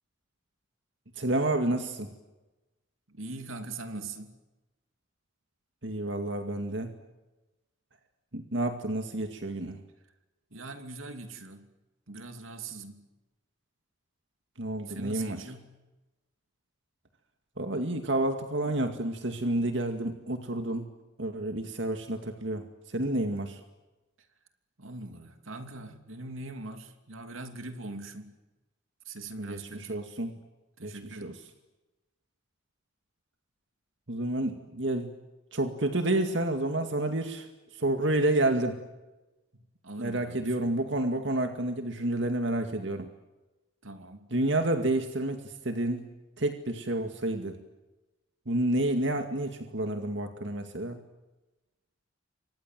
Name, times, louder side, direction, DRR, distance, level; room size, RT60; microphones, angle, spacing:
voice 1, 1.2-2.1 5.8-6.9 8.3-9.8 14.6-15.4 17.6-20.9 21.2-23.6 29.4-29.6 29.9-30.3 30.8-31.3 34.1-35.1 35.5-37.5 37.7-38.8 40.0-43.1 44.3-46.1 46.4-47.6 48.5-51.0, right 1 dB, 65° right, 6 dB, 2.2 m, -29 dB
voice 2, 3.1-4.3 10.5-11.7 12.1-13.0 14.9-15.8 24.2-24.3 24.8-28.3 29.0-30.1 30.8-31.4 39.5-40.8 43.8-44.3, right 2 dB, 85° right, 7 dB, 2.9 m, -42 dB
29.5 x 25.0 x 7.7 m, 1.1 s
head